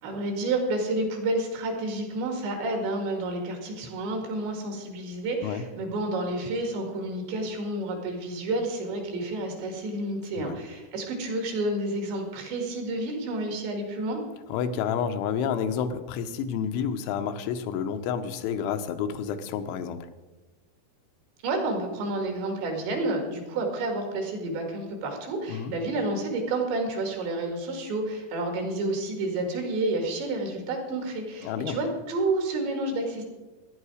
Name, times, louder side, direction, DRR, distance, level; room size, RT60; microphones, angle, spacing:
voice 1, 0.0-14.2 21.4-33.2, right 2 dB, 70° right, 3 dB, 4.5 m, -30 dB
voice 2, 14.5-20.1 25.5-25.8 31.4-31.8, left 7 dB, 85° left, 8 dB, 3.3 m, -30 dB
15.5 x 11.0 x 4.9 m, 1.2 s
omnidirectional pair, 5.3 m